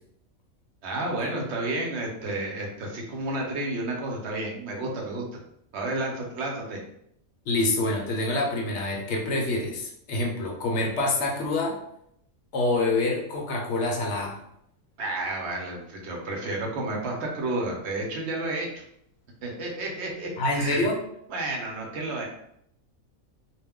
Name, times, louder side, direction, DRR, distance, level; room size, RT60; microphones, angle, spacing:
voice 1, 0.8-5.2 5.7-6.8 15.0-18.9 19.4-20.9 21.3-22.3, right 2 dB, 60° right, -1 dB, 0.9 m, -31 dB
voice 2, 7.5-11.8 12.5-14.4 20.4-21.0, left 2 dB, 65° left, 0 dB, 0.8 m, -26 dB
2.4 x 2.2 x 3.5 m, 0.72 s
omnidirectional pair, 1.4 m